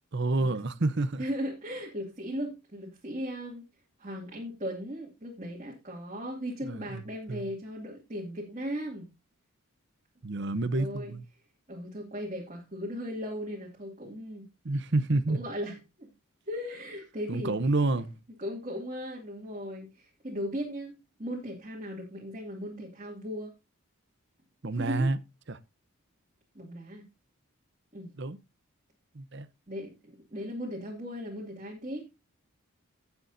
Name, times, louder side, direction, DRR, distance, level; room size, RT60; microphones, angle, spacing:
voice 1, 0.1-1.2 6.7-7.0 7.3-7.5 10.2-11.2 14.6-15.4 17.3-18.2 24.6-25.2 25.5-25.6 28.2-28.4 29.1-29.5, right 2 dB, 55° right, 0.8 m, -28 dB
voice 2, 1.2-3.6 4.0-9.1 10.7-11.1 11.7-14.4 15.3-16.1 16.5-17.7 18.4-20.9 21.2-23.5 24.8-25.1 26.5-27.1 27.9-28.1 29.7-32.1, equal, 35° right, 2.4 m, -37 dB
17.0 x 7.0 x 2.7 m
head